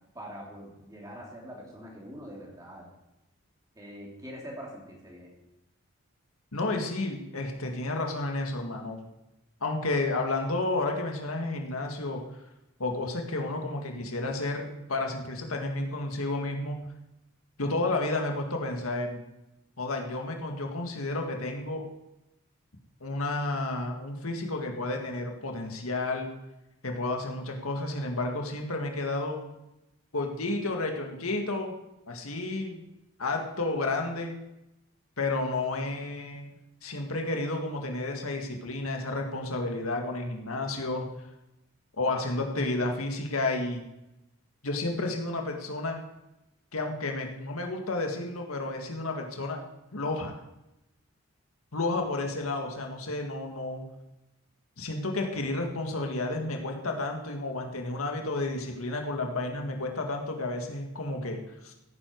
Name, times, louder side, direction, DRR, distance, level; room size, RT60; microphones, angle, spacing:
voice 1, 0.1-2.9 3.7-5.3, equal, 15° right, -2 dB, 3.2 m, -43 dB
voice 2, 6.5-9.0 9.6-12.2 12.8-16.8 17.6-19.2 19.8-21.8 23.0-26.3 26.8-29.4 30.1-31.7 32.1-32.8 33.2-34.3 35.2-36.5 36.8-41.1 42.0-43.8 44.6-46.0 46.7-49.6 49.9-50.3 51.7-53.8 54.8-61.7, left 2 dB, 85° left, 3 dB, 1.9 m, -31 dB
16.0 x 9.9 x 4.7 m, 0.93 s
head